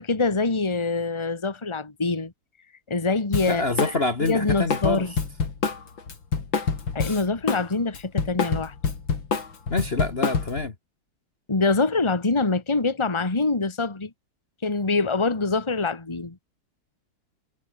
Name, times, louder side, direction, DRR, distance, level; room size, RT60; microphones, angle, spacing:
voice 1, 0.0-2.3 2.9-3.9 4.2-5.1 6.9-8.7 11.5-14.1 14.6-16.4, left 3 dB, 15° left, 1.9 m, -25 dB
Drum kit, 3.3-4.0 4.2-7.6 7.9-10.7, left 5 dB, 80° left, 3.7 m, -26 dB
voice 2, 3.5-5.0 9.7-10.7, left 3 dB, 30° left, 1.9 m, -26 dB
omnidirectional pair, 2.1 m